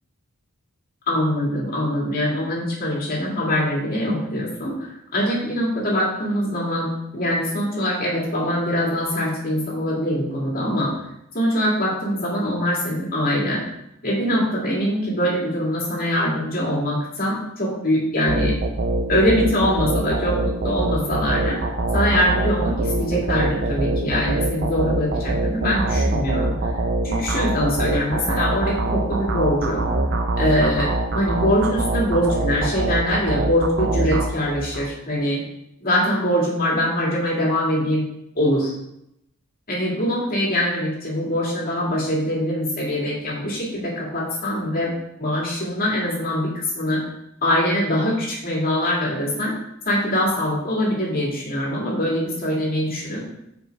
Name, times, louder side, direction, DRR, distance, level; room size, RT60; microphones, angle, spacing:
voice 1, 1.1-11.0 11.3-13.6 14.0-18.5 19.1-21.6 21.9-26.7 27.0-29.8 30.3-35.4 35.8-38.0 38.3-38.7 39.7-44.9 45.2-47.0 47.4-49.5 49.9-53.2, equal, 40° left, -4 dB, 2.4 m, -23 dB
sound 1, 18.3-34.9, right 2 dB, 50° right, 0.7 m, -24 dB
7.5 x 5.1 x 4.7 m, 0.81 s
head